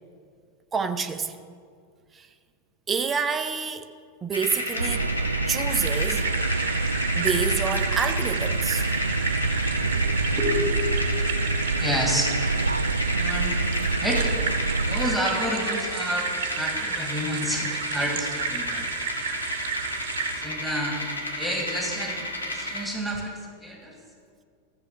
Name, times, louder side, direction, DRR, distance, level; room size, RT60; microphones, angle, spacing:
voice 1, 0.7-1.4 2.1-2.3 2.9-3.9 4.2-5.1 5.5-6.4 7.2-8.9, right 5 dB, 20° right, 0.7 m, -28 dB
sound 1, 4.3-22.9, left 1 dB, 80° left, 1.7 m, -32 dB
sound 2, 4.8-15.2, right 3 dB, 80° right, 0.3 m, -27 dB
sound 3, 5.7-20.4, right 6 dB, 55° right, 1.0 m, -33 dB
voice 2, 9.7-10.1 10.4-10.7 11.0-11.1 11.8-12.3 13.1-13.6 14.0-14.3 14.8-18.9 20.3-21.1 21.3-24.0, equal, ahead, 2.3 m, -30 dB
14.5 x 7.1 x 7.7 m
figure-of-eight pair, 90°, 0 cm